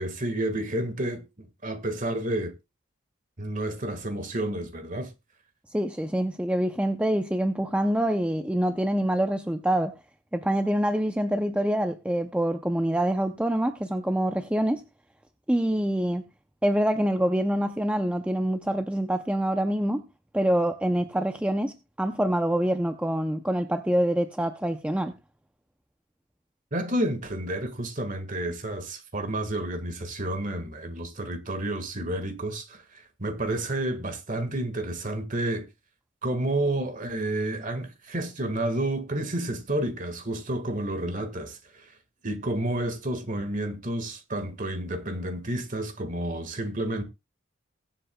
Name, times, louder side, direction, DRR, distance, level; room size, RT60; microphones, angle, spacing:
voice 1, 0.0-2.5 3.4-5.1 26.7-35.7 36.2-41.9 42.2-47.0, right 1 dB, 40° right, 1.6 m, -30 dB
voice 2, 5.7-10.0 10.3-14.8 15.5-16.2 16.6-20.0 20.3-25.1, right 1 dB, 5° right, 0.5 m, -25 dB
22.0 x 7.7 x 2.2 m
head